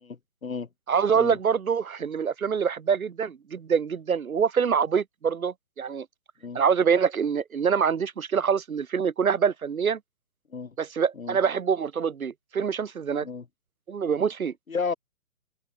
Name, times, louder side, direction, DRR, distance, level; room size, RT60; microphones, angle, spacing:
voice 1, 0.0-0.7 1.1-1.4 6.4-6.6 10.5-10.8 11.1-11.4 13.2-13.5 14.7-14.9, left 5 dB, 75° left, 4.6 m, -33 dB
voice 2, 0.9-6.1 6.5-10.0 10.8-13.3 13.9-14.5, right 6 dB, 85° right, 0.9 m, -25 dB
figure-of-eight pair, 140°, 42 cm